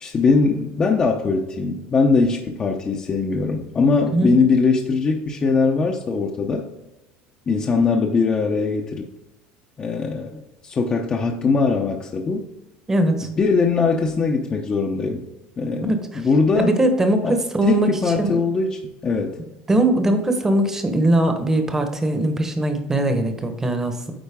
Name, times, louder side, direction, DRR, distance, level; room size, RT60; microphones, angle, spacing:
voice 1, 0.0-6.6 7.5-9.1 9.8-12.5 13.4-15.2 15.6-16.8 17.2-19.4, left 4 dB, 25° left, 0 dB, 0.7 m, -21 dB
voice 2, 12.9-13.3 15.9-16.0 16.6-17.9 18.2-18.4 19.7-24.1, right 1 dB, 15° right, 6 dB, 1.0 m, -20 dB
8.9 x 4.5 x 3.6 m, 0.95 s
supercardioid pair, 130°, 3 cm